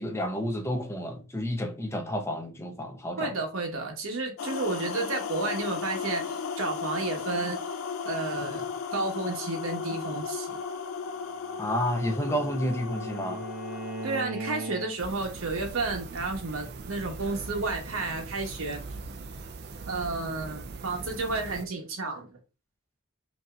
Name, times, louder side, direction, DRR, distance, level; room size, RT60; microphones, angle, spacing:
voice 1, 0.0-3.3 11.6-13.4, equal, 15° left, 0.6 m, -30 dB
voice 2, 3.2-7.6 8.0-10.6 14.0-19.0 19.9-22.4, right 3 dB, 90° right, 1.2 m, -32 dB
sound 1, 4.4-14.3, left 5 dB, 90° left, 0.5 m, -35 dB
Bowed string instrument, 11.3-15.3, right 2 dB, 35° right, 1.1 m, -39 dB
sound 2, 15.0-21.7, right 3 dB, 50° right, 0.4 m, -41 dB
5.3 x 2.8 x 2.4 m
head